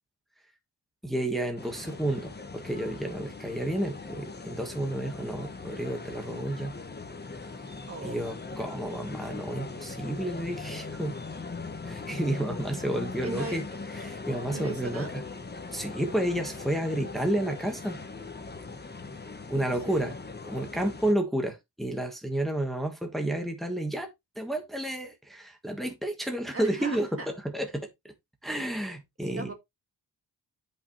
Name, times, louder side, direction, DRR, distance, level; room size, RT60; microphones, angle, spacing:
voice 1, 1.0-6.8 8.0-11.2 11.8-13.6 13.9-15.2 15.7-18.0 19.5-20.1 20.4-24.1 24.4-28.1 28.4-29.5, right 1 dB, ahead, 1.5 m, -31 dB
sound 1, 1.6-21.1, left 4 dB, 25° left, 1.1 m, -40 dB
voice 2, 7.9-8.2 13.2-13.6 14.5-15.1 19.7-20.1 26.5-27.3 29.2-29.5, right 3 dB, 35° right, 1.7 m, -38 dB
11.5 x 5.5 x 3.2 m
wide cardioid pair, 170°, 41 cm